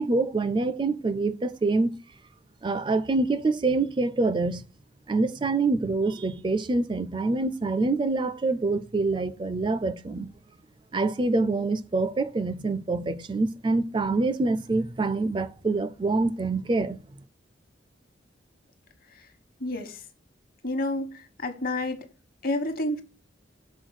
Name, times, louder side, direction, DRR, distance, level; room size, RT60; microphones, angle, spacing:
voice 1, 0.0-1.9 2.6-4.6 5.1-10.3 10.9-17.0, right 3 dB, 25° right, 0.4 m, -26 dB
voice 2, 19.6-20.0 20.6-22.1 22.4-23.0, left 1 dB, 55° left, 1.2 m, -29 dB
6.3 x 4.3 x 6.3 m
head